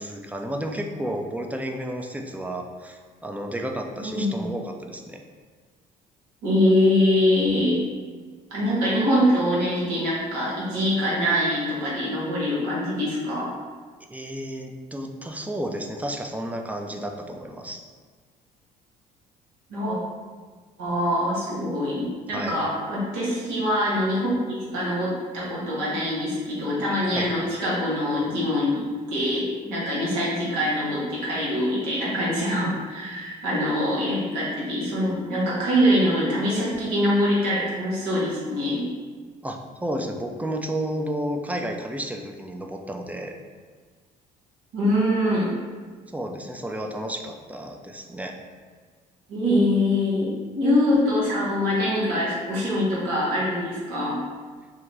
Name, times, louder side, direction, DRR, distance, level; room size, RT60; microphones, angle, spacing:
voice 1, 0.0-5.2 14.1-17.8 22.3-22.6 27.1-27.3 39.4-43.3 46.1-48.4, right 1 dB, 5° right, 3 dB, 0.4 m, -32 dB
voice 2, 4.0-4.5 6.4-7.8 8.5-13.5 19.7-20.0 20.8-24.3 24.7-38.8 44.7-45.5 49.3-54.2, left 1 dB, 80° right, -7 dB, 1.1 m, -24 dB
2.9 x 2.2 x 3.7 m, 1.5 s
hypercardioid pair, 55°, 21 cm